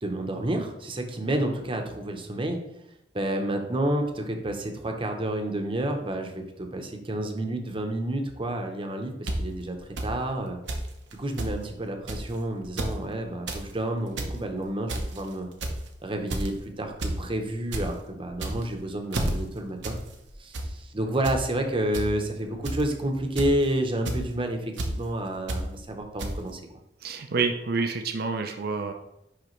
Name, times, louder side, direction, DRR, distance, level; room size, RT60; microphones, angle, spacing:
voice 1, 0.0-2.6 3.1-9.8 10.0-10.6 11.1-15.5 16.0-20.0 20.4-26.6, right 1 dB, 30° right, 4 dB, 0.8 m, -30 dB
sound 1, 9.3-9.4 10.0-10.1 10.7-10.9 11.1-11.5 12.1-12.3 12.6-12.9 13.3-13.6 14.0-14.3 14.9-15.2 15.6-15.9 16.3-16.6 17.0-17.2 17.5-17.8 18.3-18.7 19.1-19.3 19.8-20.0 20.3-20.7 21.2-21.4 21.9-22.0 22.6-22.9 23.4-23.6 24.1-24.2 24.8-24.9 25.5-25.6 26.2-26.3, right 2 dB, 90° right, 0.9 m, -30 dB
voice 2, 27.0-28.9, right 4 dB, 60° right, 5 dB, 0.6 m, -28 dB
10.0 x 3.4 x 3.2 m, 0.85 s
head